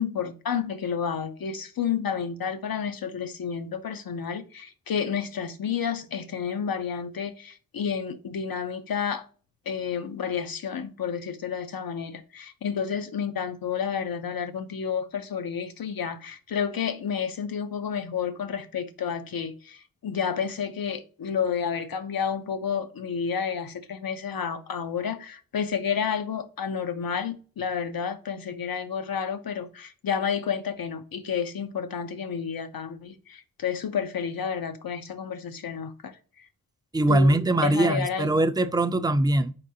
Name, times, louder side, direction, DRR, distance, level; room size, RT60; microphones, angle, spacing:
voice 1, 0.0-9.3 9.7-36.4 37.1-38.3, left 7 dB, 90° left, 0.6 m, -30 dB
voice 2, 36.9-39.5, right 1 dB, 10° right, 0.3 m, -22 dB
4.6 x 3.7 x 2.7 m
wide cardioid pair, 60°, 34 cm